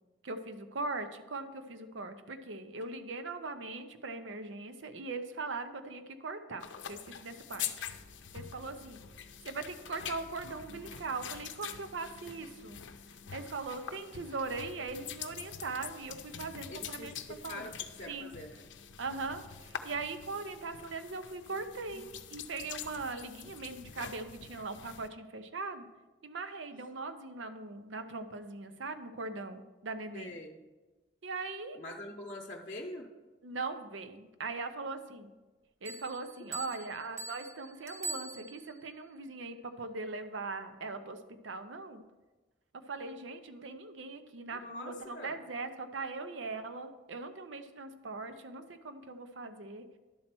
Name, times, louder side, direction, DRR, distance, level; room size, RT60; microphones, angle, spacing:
voice 1, 0.2-7.7 8.3-9.0 9.4-12.8 13.3-17.7 18.1-18.3 19.0-25.8 26.2-30.3 31.2-31.8 33.4-35.3 35.8-42.0 42.7-49.8, right 3 dB, 85° right, 9 dB, 0.7 m, -40 dB
sound 1, 6.6-25.1, left 8 dB, 80° left, 0.6 m, -45 dB
voice 2, 16.7-17.7 18.0-18.6 21.9-22.0 30.1-30.6 31.7-33.1 36.8-36.9 44.5-45.3, left 1 dB, 40° left, 1 dB, 0.8 m, -44 dB
Bell, 35.8-38.9, right 3 dB, 15° right, 0.5 m, -43 dB
11.0 x 4.3 x 6.0 m, 1.2 s
head